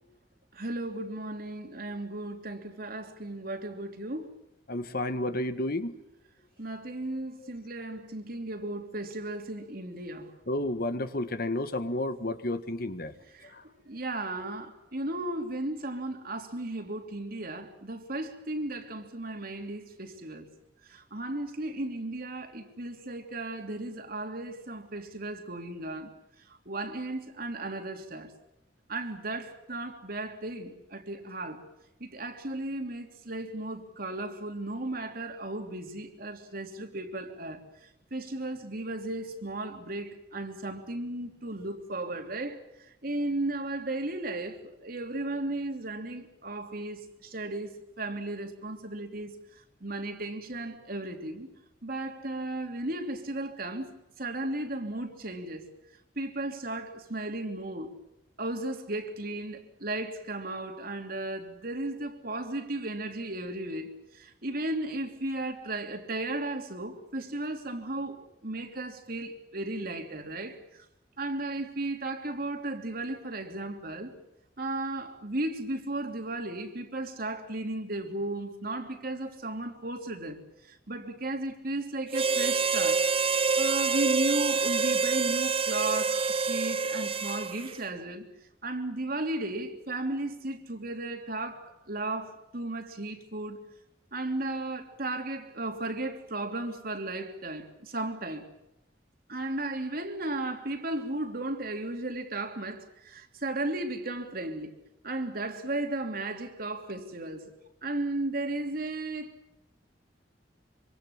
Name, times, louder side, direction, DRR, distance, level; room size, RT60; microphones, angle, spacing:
voice 1, 0.5-4.3 6.6-10.3 13.3-20.5 20.8-26.1 26.5-28.3 28.9-31.6 32.0-51.5 51.8-53.9 54.2-55.7 56.1-58.0 58.4-70.8 71.2-74.1 74.6-83.1 83.6-88.3 88.6-93.6 94.1-98.5 99.3-104.8 105.0-107.5 107.8-109.4, right 2 dB, 55° right, 3.2 m, -35 dB
voice 2, 4.7-5.9 10.5-13.1 13.5-13.6, left 1 dB, 55° left, 1.7 m, -31 dB
Harmonica, 82.1-87.8, right 4 dB, 30° right, 0.9 m, -27 dB
26.0 x 25.5 x 7.3 m
head